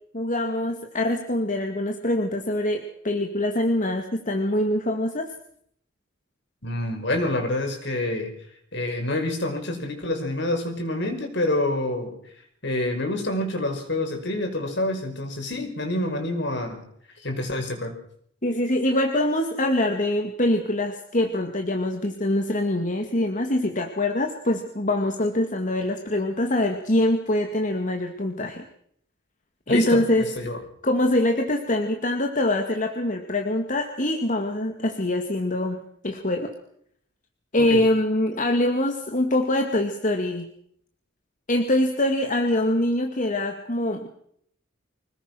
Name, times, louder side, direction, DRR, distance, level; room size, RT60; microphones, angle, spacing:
voice 1, 0.1-5.3 18.4-28.6 29.7-30.3 30.8-36.5 37.5-40.5 41.5-44.1, left 1 dB, 40° left, 5 dB, 2.2 m, -24 dB
voice 2, 6.6-8.3 8.7-12.1 12.6-16.8 17.2-17.9 29.7-30.6 37.6-37.8, left 1 dB, 60° left, 5 dB, 5.8 m, -27 dB
25.5 x 19.5 x 6.3 m, 0.67 s
head